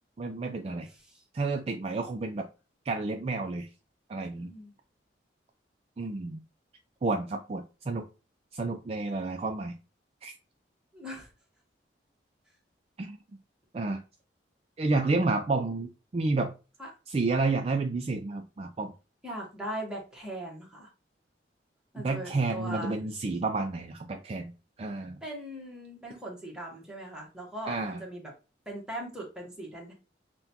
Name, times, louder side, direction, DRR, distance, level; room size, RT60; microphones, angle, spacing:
voice 1, 0.2-0.9 1.3-2.5 2.9-3.7 4.1-4.5 6.0-6.4 7.0-8.0 8.5-9.7 10.2-10.4 13.0-13.2 13.7-14.0 14.8-16.5 17.1-18.9 22.0-24.5 24.8-25.2 27.7-28.0, right 3 dB, 35° right, 4 dB, 0.3 m, -30 dB
voice 2, 4.3-4.7 10.9-11.3 16.8-16.9 19.2-20.9 21.9-23.1 25.2-28.3 28.7-29.9, right 1 dB, 5° right, -3 dB, 1.1 m, -40 dB
5.8 x 2.2 x 2.8 m, 0.31 s
head